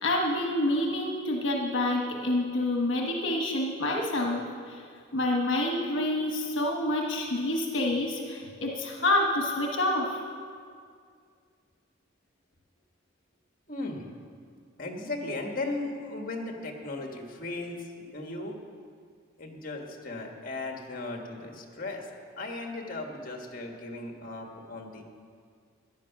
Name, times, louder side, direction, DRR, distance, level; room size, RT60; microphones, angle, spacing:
voice 1, 0.0-4.8 5.1-10.2, left 1 dB, 75° left, 1 dB, 1.2 m, -28 dB
voice 2, 13.7-14.1 14.8-18.6 19.4-22.1 22.4-25.0, left 2 dB, 45° left, 2 dB, 1.6 m, -36 dB
14.0 x 10.5 x 5.9 m, 2.1 s
head